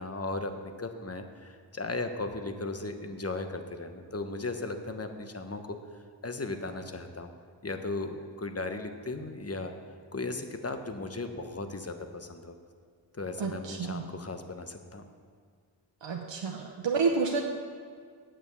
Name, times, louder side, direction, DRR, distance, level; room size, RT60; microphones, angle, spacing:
voice 1, 0.0-5.8 6.2-7.3 7.6-9.7 10.1-12.5 13.1-15.0, left 3 dB, 30° left, 7 dB, 1.1 m, -36 dB
voice 2, 13.4-14.0 16.0-17.4, right 4 dB, 70° right, 1 dB, 0.9 m, -29 dB
8.6 x 7.2 x 7.0 m, 2.1 s
cardioid pair, 40°, 45 cm